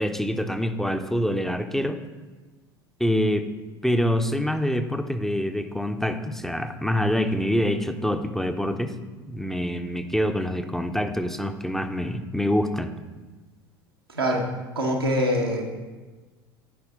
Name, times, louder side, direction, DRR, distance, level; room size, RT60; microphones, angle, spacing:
voice 1, 0.0-2.0 3.0-3.5 3.8-8.9 9.3-12.9, equal, 5° left, 6 dB, 0.6 m, -25 dB
voice 2, 14.7-15.7, equal, 85° right, -1 dB, 1.2 m, -24 dB
9.3 x 4.9 x 4.8 m, 1.3 s
figure-of-eight pair, 70°, 12 cm